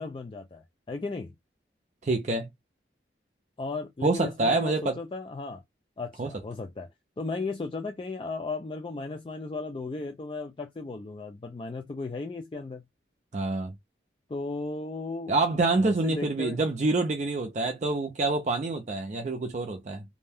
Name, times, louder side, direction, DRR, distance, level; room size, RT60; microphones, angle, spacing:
voice 1, 0.0-1.3 3.6-5.6 6.0-6.9 7.2-12.8 14.3-15.3 15.8-16.6, left 3 dB, 30° left, 0.3 m, -35 dB
voice 2, 2.0-2.5 4.0-5.0 6.2-6.3 13.3-13.7 15.3-20.0, right 3 dB, 40° right, 0.4 m, -26 dB
2.6 x 2.1 x 3.3 m
head